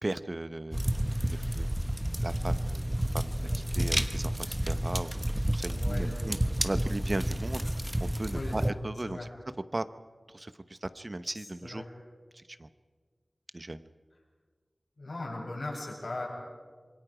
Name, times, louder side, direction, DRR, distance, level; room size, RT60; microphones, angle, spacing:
voice 1, 0.0-0.8 1.3-1.7 2.2-6.4 6.6-7.7 8.0-9.2 9.7-9.8 10.3-11.8 12.3-12.7 13.5-13.8, right 2 dB, 40° right, 12 dB, 0.8 m, -37 dB
sound 1, 0.7-8.7, right 1 dB, 15° right, 1.1 m, -30 dB
voice 2, 5.7-6.2 8.2-8.6 9.0-9.3 11.3-11.9 15.0-16.3, left 2 dB, 75° left, -2 dB, 6.7 m, -39 dB
26.0 x 23.0 x 5.0 m, 1.5 s
wide cardioid pair, 60°, 0 cm